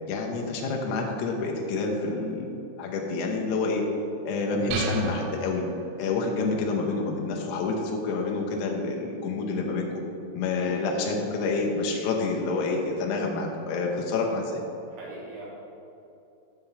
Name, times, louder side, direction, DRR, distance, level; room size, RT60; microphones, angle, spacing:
voice 1, 0.1-3.8 4.3-5.7 6.0-9.9 10.3-14.6, left 3 dB, 80° left, -1 dB, 2.4 m, -28 dB
sound 1, 4.7-6.3, right 3 dB, 85° right, 3.2 m, -32 dB
voice 2, 14.9-15.5, right 2 dB, 70° right, -6 dB, 2.5 m, -40 dB
7.2 x 4.3 x 6.8 m, 2.7 s
omnidirectional pair, 5.7 m